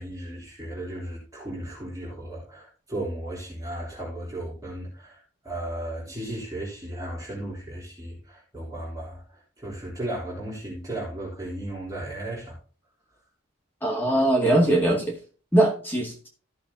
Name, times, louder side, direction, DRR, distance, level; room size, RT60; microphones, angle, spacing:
voice 1, 0.0-12.6, right 1 dB, 20° right, -5 dB, 3.4 m, -35 dB
voice 2, 13.8-15.2 15.5-16.3, right 1 dB, 10° left, -1 dB, 2.1 m, -21 dB
14.5 x 6.6 x 2.7 m, 0.38 s
head